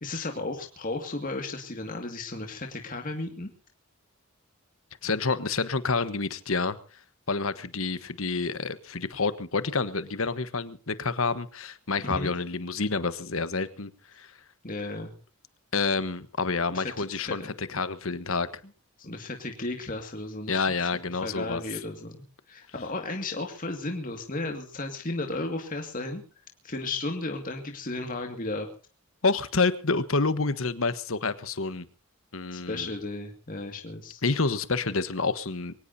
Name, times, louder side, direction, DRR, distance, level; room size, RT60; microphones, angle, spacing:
voice 1, 0.0-3.5 12.0-12.3 14.6-15.1 16.7-17.5 19.0-20.7 21.2-26.2 26.6-28.7 32.5-34.2, left 2 dB, 40° left, 3 dB, 2.2 m, -34 dB
voice 2, 5.0-6.8 7.3-13.9 14.2-14.3 15.7-18.5 20.5-21.6 29.2-31.9 32.3-32.9 34.2-35.7, left 4 dB, 70° left, 13 dB, 1.3 m, -28 dB
23.5 x 18.5 x 2.8 m, 0.37 s
head